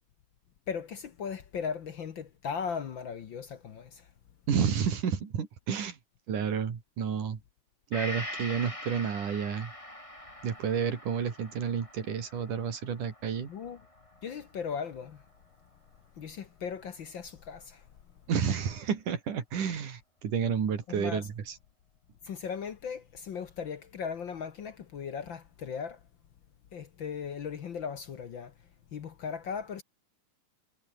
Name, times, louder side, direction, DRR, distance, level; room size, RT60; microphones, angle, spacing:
voice 1, 0.7-4.1 13.5-13.8 14.2-15.2 16.2-17.8 20.9-21.3 22.2-26.0 26.7-28.5 28.9-29.8, left 6 dB, 55° left, 1.3 m, -37 dB
voice 2, 4.5-6.0 6.3-7.4 7.9-9.7 10.4-13.5 18.3-21.5, right 7 dB, 75° right, 4.6 m, -30 dB
Gong, 7.9-15.6 15.9-16.0, left 1 dB, 10° left, 8.0 m, -44 dB
omnidirectional pair, 3.6 m